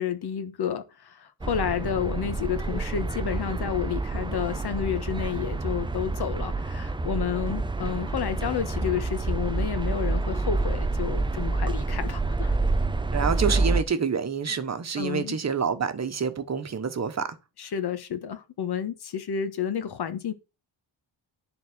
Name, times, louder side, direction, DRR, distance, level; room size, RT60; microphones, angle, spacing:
voice 1, 0.0-12.6 15.0-15.4 17.6-20.3, left 8 dB, 55° left, 1.5 m, -30 dB
sound 1, 1.4-13.8, right 3 dB, 10° right, 0.4 m, -28 dB
voice 2, 13.1-17.3, right 6 dB, 35° right, 1.2 m, -27 dB
10.5 x 4.1 x 6.3 m
wide cardioid pair, 145°, 47 cm